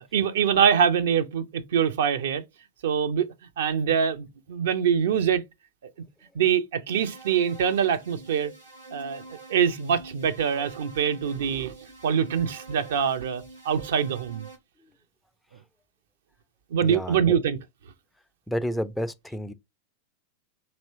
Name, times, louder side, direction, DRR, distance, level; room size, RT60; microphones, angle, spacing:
voice 1, 0.1-2.4 2.8-3.3 3.6-5.4 6.3-8.5 8.9-9.2 9.5-11.7 12.0-14.5 16.7-17.6, right 8 dB, 60° right, 0.6 m, -24 dB
sound 1, 6.9-14.6, right 3 dB, 90° right, 2.6 m, -46 dB
voice 2, 16.8-17.2 18.5-19.5, equal, 5° left, 0.4 m, -30 dB
4.3 x 2.9 x 2.7 m
figure-of-eight pair, 90°, 0 cm